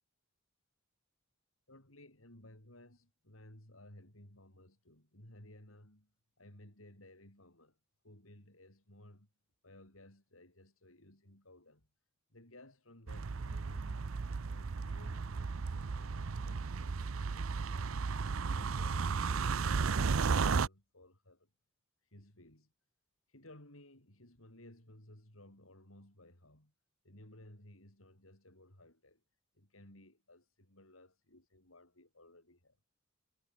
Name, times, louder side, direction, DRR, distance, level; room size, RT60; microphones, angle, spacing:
voice 1, 1.7-6.1 6.4-7.8 8.0-9.3 9.6-11.9 12.3-14.1 14.5-18.0 18.5-21.5 22.0-22.7 23.3-26.7 27.0-29.2 29.5-32.8, left 1 dB, 90° left, 7.6 m, -58 dB
sound 1, 13.1-20.7, right 5 dB, 85° right, 0.6 m, -34 dB
head